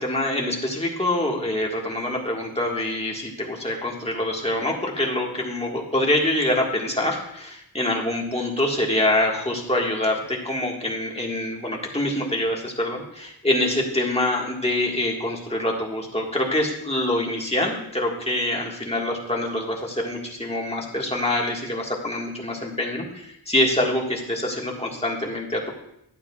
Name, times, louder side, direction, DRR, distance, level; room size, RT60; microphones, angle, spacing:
voice 1, 0.0-25.7, left 1 dB, 15° left, -2 dB, 1.7 m, -25 dB
11.5 x 9.0 x 2.4 m, 0.78 s
wide cardioid pair, 90°, 40 cm